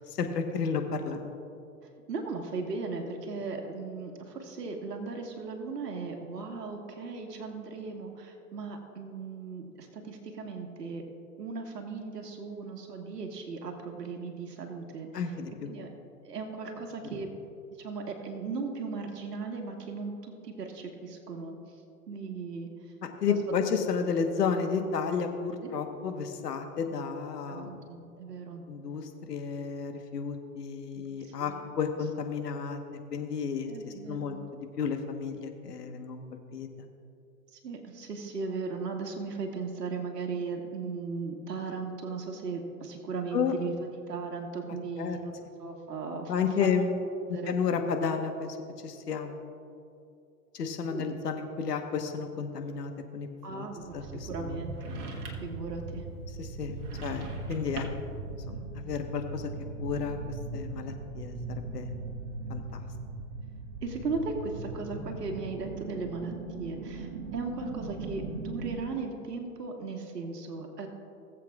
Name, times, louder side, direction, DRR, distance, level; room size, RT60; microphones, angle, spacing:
voice 1, 0.2-1.4 15.1-15.7 23.2-27.8 28.7-32.8 33.1-36.2 36.5-36.7 43.3-43.5 45.0-45.2 46.3-46.9 47.3-48.6 48.8-49.3 50.5-53.6 53.9-54.7 56.3-57.9 58.5-59.5 59.8-60.2 60.5-61.9 62.5-62.9, left 6 dB, 80° left, 5 dB, 1.3 m, -32 dB
voice 2, 2.1-11.0 11.4-15.3 15.7-15.9 16.2-17.3 17.8-21.6 22.1-22.7 23.3-23.5 25.6-25.7 27.5-28.6 31.0-31.6 33.7-34.4 37.5-43.8 44.1-46.3 46.6-46.7 47.3-47.6 50.9-51.2 53.4-54.9 55.4-56.0 63.8-66.3 66.6-70.9, right 4 dB, 90° right, 3 dB, 1.6 m, -37 dB
sound 1, 53.8-68.8, right 3 dB, 35° right, 1.1 m, -39 dB
sound 2, 54.7-55.6 56.7-58.2, right 2 dB, 70° right, 1.6 m, -42 dB
19.5 x 7.6 x 2.4 m, 2.6 s
hypercardioid pair, 135°, 47 cm